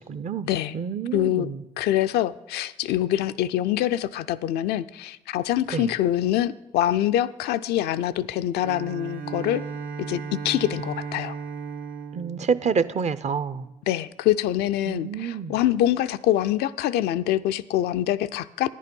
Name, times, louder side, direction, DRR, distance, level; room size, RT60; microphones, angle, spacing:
voice 1, 0.0-1.6 5.7-5.9 12.1-13.7 14.9-15.6, right 6 dB, 45° right, 15 dB, 0.6 m, -28 dB
voice 2, 1.1-9.6 10.1-11.4 13.9-18.7, left 12 dB, 75° left, 11 dB, 0.4 m, -25 dB
Bowed string instrument, 8.6-13.7, right 5 dB, 65° right, 1.0 m, -36 dB
10.0 x 8.4 x 5.3 m, 0.93 s
supercardioid pair, 55°, 16 cm